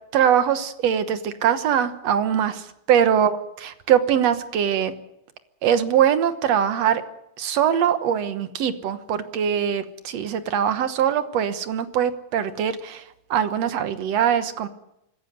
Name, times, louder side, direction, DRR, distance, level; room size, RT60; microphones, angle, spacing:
voice 1, 0.1-4.9 5.6-7.0 7.4-13.0 13.3-14.7, right 9 dB, 60° right, 10 dB, 1.8 m, -22 dB
25.5 x 14.5 x 8.1 m, 0.84 s
omnidirectional pair, 4.2 m